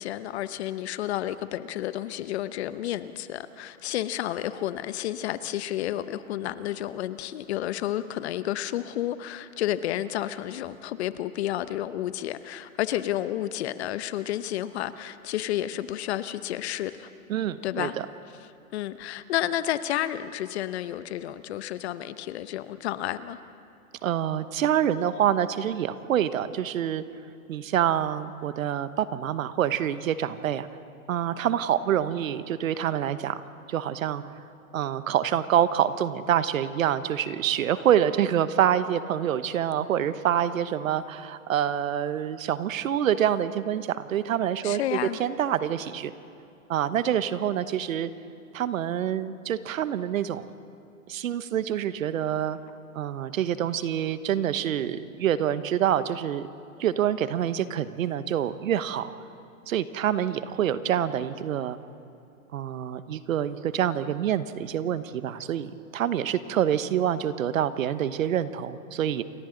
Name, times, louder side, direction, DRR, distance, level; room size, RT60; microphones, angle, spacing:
voice 1, 0.0-17.1 17.6-17.9 18.7-23.4 44.6-45.2, left 12 dB, 50° left, 13 dB, 0.9 m, -31 dB
voice 2, 17.3-17.9 24.0-27.0 27.5-30.7 31.1-33.4 33.7-34.2 34.7-46.1 46.7-48.1 48.5-50.5 51.1-52.6 52.9-56.5 56.8-59.1 59.7-61.8 62.5-69.2, right 10 dB, 70° right, 13 dB, 1.1 m, -26 dB
28.5 x 23.5 x 3.9 m, 2.7 s
hypercardioid pair, 135°, 42 cm